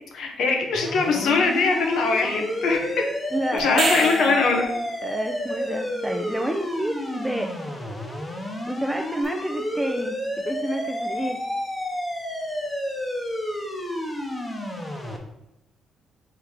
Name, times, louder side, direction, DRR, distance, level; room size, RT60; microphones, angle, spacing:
voice 1, 0.1-3.0 3.5-4.6, left 4 dB, 75° left, 2 dB, 0.8 m, -22 dB
sound 1, 0.7-15.2, left 1 dB, 20° left, 0.9 m, -30 dB
voice 2, 3.3-4.4 5.0-7.5 8.7-11.4, right 1 dB, 10° right, 3 dB, 0.4 m, -30 dB
sound 2, 3.6-4.6 9.2-9.3, right 3 dB, 60° right, 1.4 m, -26 dB
4.7 x 3.2 x 3.6 m, 0.88 s
cardioid pair, 90°, 0 cm